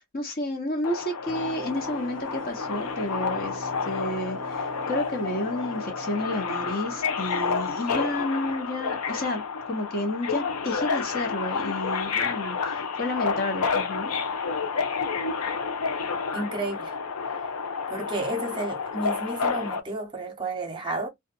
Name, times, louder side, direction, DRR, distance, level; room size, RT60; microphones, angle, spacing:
voice 1, 0.0-14.1, left 1 dB, 45° left, 1.0 m, -31 dB
Subway metro underground, 0.8-19.8, left 5 dB, 85° left, 0.6 m, -30 dB
sound 1, 1.3-8.3, right 3 dB, 40° right, 0.4 m, -44 dB
voice 2, 16.3-17.0 17.9-21.1, right 2 dB, 20° right, 0.9 m, -31 dB
2.5 x 2.4 x 2.5 m
head